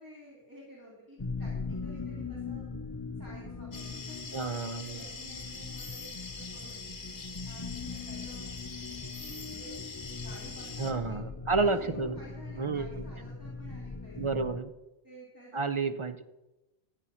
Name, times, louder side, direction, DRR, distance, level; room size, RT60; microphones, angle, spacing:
voice 1, 0.0-2.7 3.2-6.9 7.4-8.5 9.4-9.8 10.2-11.2 11.5-14.4 15.0-15.9, equal, 15° right, -6 dB, 2.8 m, -51 dB
sound 1, 1.2-14.6, left 4 dB, 20° left, 0.6 m, -41 dB
sound 2, 3.7-10.9, left 4 dB, 45° left, 1.7 m, -44 dB
voice 2, 4.3-5.0 10.8-12.2 12.6-12.9 14.2-14.7 15.5-16.3, right 4 dB, 40° right, 11 dB, 0.5 m, -30 dB
14.5 x 8.3 x 5.6 m, 0.98 s
omnidirectional pair, 1.2 m